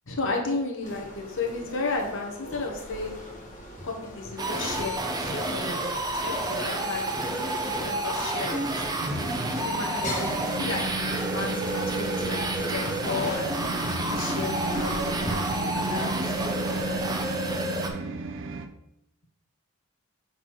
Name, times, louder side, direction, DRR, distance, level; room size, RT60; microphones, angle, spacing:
voice 1, 0.1-3.2 3.8-5.9 6.2-8.9 9.6-17.0, left 3 dB, 60° left, 1 dB, 1.1 m, -34 dB
sound 1, 0.8-17.6, equal, 35° left, 1.2 m, -42 dB
sound 2, 4.4-17.9, right 2 dB, 20° right, 0.7 m, -30 dB
sound 3, 9.0-18.7, right 2 dB, 60° right, 0.5 m, -34 dB
6.1 x 3.9 x 4.6 m, 0.83 s
head